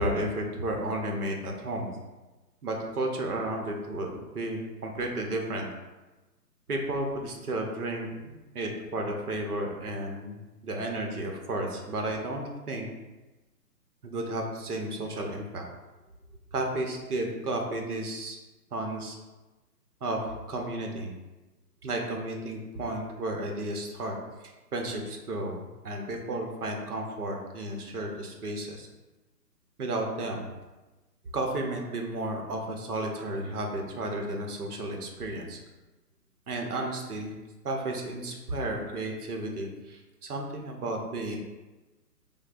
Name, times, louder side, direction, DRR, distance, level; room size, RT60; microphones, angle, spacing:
voice 1, 0.0-1.9 2.6-5.7 6.7-12.9 14.0-15.7 16.5-18.4 18.7-19.2 20.0-21.1 21.8-28.9 29.8-30.5 31.3-35.6 36.5-37.3 37.6-41.4, right 1 dB, 65° right, 1 dB, 0.9 m, -33 dB
6.2 x 2.2 x 2.5 m, 1.1 s
hypercardioid pair, 150°, 49 cm